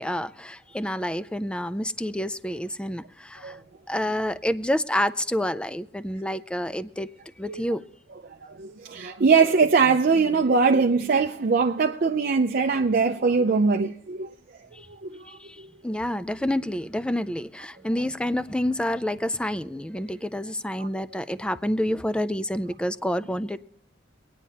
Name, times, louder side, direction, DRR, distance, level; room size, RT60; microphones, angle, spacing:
voice 1, 0.0-3.6 3.9-7.1 7.4-7.8 14.7-14.9 15.3-23.6, left 1 dB, 5° left, 0.3 m, -28 dB
voice 2, 8.5-14.3 14.9-15.3 20.8-20.9, right 4 dB, 50° right, 0.5 m, -22 dB
24.5 x 9.3 x 2.8 m
head